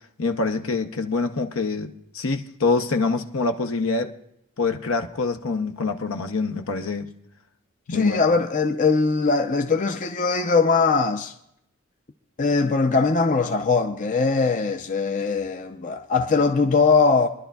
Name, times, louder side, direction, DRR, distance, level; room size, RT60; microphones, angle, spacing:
voice 1, 0.2-4.1 4.6-7.1 7.9-8.2, left 3 dB, 70° left, 0.8 m, -25 dB
voice 2, 7.9-11.3 12.4-17.3, left 4 dB, 35° left, 0.5 m, -21 dB
26.0 x 11.5 x 2.3 m
head